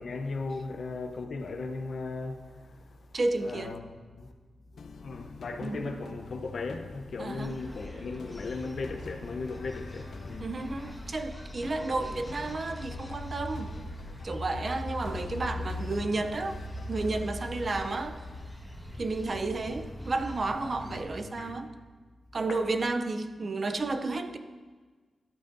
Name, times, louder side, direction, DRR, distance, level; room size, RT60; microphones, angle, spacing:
voice 1, 0.0-3.1 3.4-4.3 4.7-10.6 15.6-15.8 17.7-17.8 20.9-21.6 22.5-22.6, left 3 dB, 60° left, 0.8 m, -37 dB
voice 2, 3.1-3.8 5.6-6.0 7.2-7.6 10.4-13.8 14.2-16.6 16.9-18.2 19.0-21.8 22.3-24.4, right 3 dB, 40° right, 0.5 m, -32 dB
sound 1, 4.8-18.5, left 5 dB, 90° left, 0.5 m, -48 dB
sound 2, 7.4-21.0, left 1 dB, ahead, 1.5 m, -41 dB
12.0 x 9.0 x 2.6 m
wide cardioid pair, 120°, 0 cm